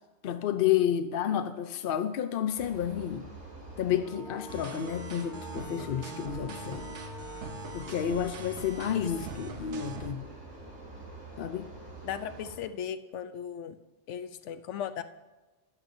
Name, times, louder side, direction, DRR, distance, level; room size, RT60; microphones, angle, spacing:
voice 1, 0.2-3.3 3.8-6.9 7.7-10.2 11.4-11.7, left 9 dB, 60° left, 8 dB, 0.7 m, -30 dB
sound 1, 2.6-12.5, right 1 dB, 60° right, 4.5 m, -46 dB
sound 2, 4.5-10.1, right 4 dB, 80° right, 1.1 m, -42 dB
voice 2, 12.0-13.8 14.1-15.0, left 8 dB, 85° left, 10 dB, 1.0 m, -37 dB
13.0 x 10.5 x 2.6 m, 1.2 s
omnidirectional pair, 1.2 m